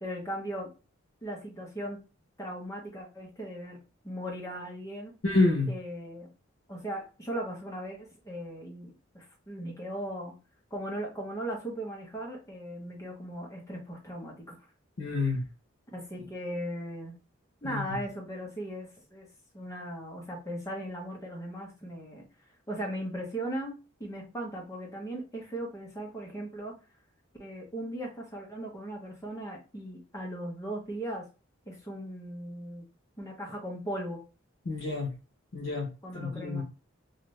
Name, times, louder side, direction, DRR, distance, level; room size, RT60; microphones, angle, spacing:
voice 1, 0.0-0.7 1.2-2.0 2.4-3.8 4.0-5.1 5.7-6.3 6.7-10.3 10.7-14.5 15.9-17.1 17.6-19.3 19.5-22.2 22.7-23.7 24.0-26.7 27.4-31.3 31.7-32.9 33.2-34.2 36.0-36.6, right 1 dB, 15° left, -1 dB, 0.8 m, -38 dB
voice 2, 5.2-5.7 15.0-15.5 17.6-17.8 34.7-35.1 35.5-35.9 36.1-36.6, left 3 dB, 75° left, -1 dB, 0.8 m, -28 dB
2.6 x 2.4 x 3.1 m, 0.32 s
head